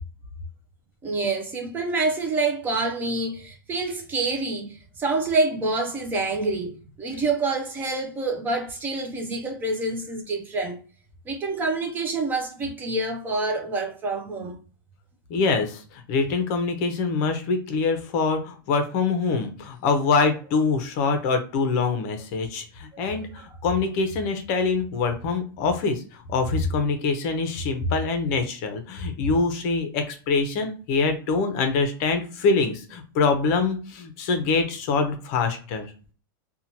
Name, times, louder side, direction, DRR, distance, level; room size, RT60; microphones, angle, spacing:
voice 1, 1.0-6.7 7.0-10.8 11.3-14.6 22.9-23.0 23.4-23.5, right 3 dB, 15° right, 0.3 m, -27 dB
voice 2, 15.3-35.9, left 4 dB, 45° left, 0.6 m, -24 dB
2.7 x 2.2 x 2.7 m
supercardioid pair, 150°, 12 cm